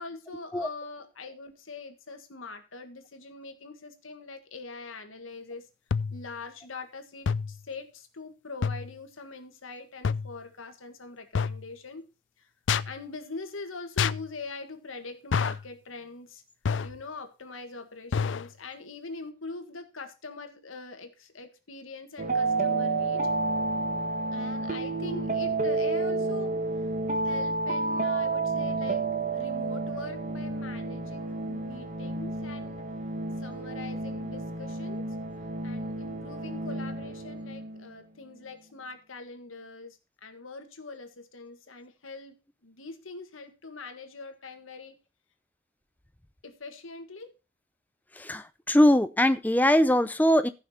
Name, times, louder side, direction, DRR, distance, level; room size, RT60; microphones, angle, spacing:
voice 1, 0.0-5.7 6.1-12.1 12.4-12.5 12.9-16.4 16.8-23.3 24.3-26.6 27.2-32.9 33.4-35.1 35.6-45.0 46.4-47.3, left 3 dB, 90° left, 7 dB, 1.7 m, -43 dB
sound 1, 5.9-6.3 7.3-7.6 8.6-8.9 10.0-10.4 11.3-11.7 12.7-13.0 14.0-14.3 15.3-15.7 16.6-17.0 18.1-18.5, left 6 dB, 70° left, 0.4 m, -28 dB
sound 2, 22.2-37.9, right 3 dB, 40° right, 1.3 m, -30 dB
voice 2, 48.2-50.5, left 1 dB, 10° left, 11 dB, 0.5 m, -22 dB
14.5 x 5.8 x 4.3 m, 0.29 s
head